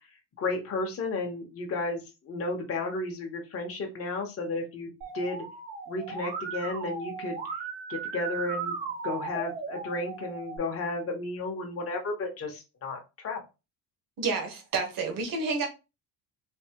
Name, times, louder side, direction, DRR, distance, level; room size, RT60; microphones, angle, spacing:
voice 1, 0.4-5.4 5.9-7.4 7.9-8.8 9.0-13.4, left 3 dB, 35° left, 0.9 m, -33 dB
Musical instrument, 5.0-10.6, right 5 dB, 90° right, 1.2 m, -37 dB
voice 2, 14.2-15.7, right 4 dB, 55° right, 1.1 m, -29 dB
3.3 x 2.6 x 2.8 m
cardioid pair, 140°, 41 cm